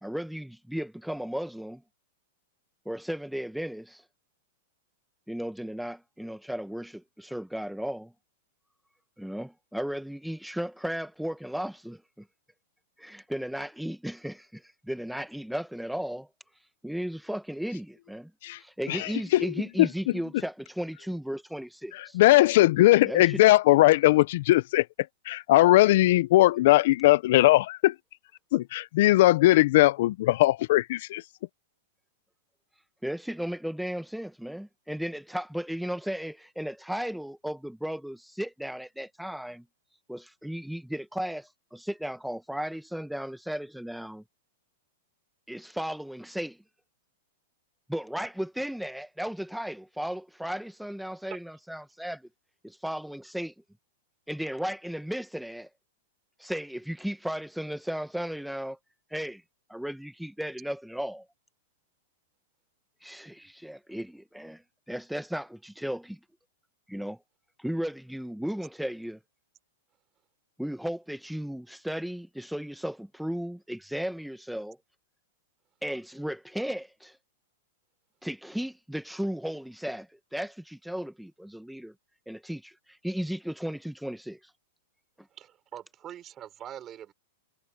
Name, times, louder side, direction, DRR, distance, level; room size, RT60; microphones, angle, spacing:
voice 1, 0.0-1.8 2.8-4.0 5.3-8.1 9.2-12.3 13.0-16.3 16.8-18.3 18.6-22.2 23.0-23.4 33.0-39.6 40.1-44.2 45.5-46.6 47.9-52.3 52.6-53.5 54.3-55.7 56.4-58.8 59.1-59.4 59.7-61.2 63.0-66.2 66.9-67.2 67.6-69.2 70.6-74.8 75.8-77.2 78.2-81.9 82.3-84.4 85.2-85.3, equal, ahead, 1.4 m, -35 dB
voice 2, 18.9-19.5 19.8-19.9 22.1-24.8 25.3-27.9 28.5-31.2, left 17 dB, 60° left, 0.6 m, -20 dB
voice 3, 85.3-87.1, right 11 dB, 25° right, 6.0 m, -43 dB
hypercardioid pair, 135°, 0 cm